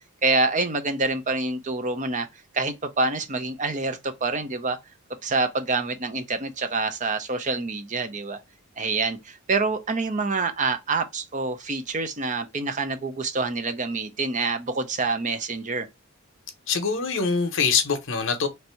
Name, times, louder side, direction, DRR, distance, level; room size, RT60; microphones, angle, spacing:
voice 1, 0.2-2.3 2.5-4.8 5.2-8.4 8.8-15.9, right 3 dB, 35° right, 0.6 m, -26 dB
voice 2, 16.7-18.5, left 5 dB, 60° left, 0.8 m, -24 dB
3.3 x 2.7 x 4.3 m
head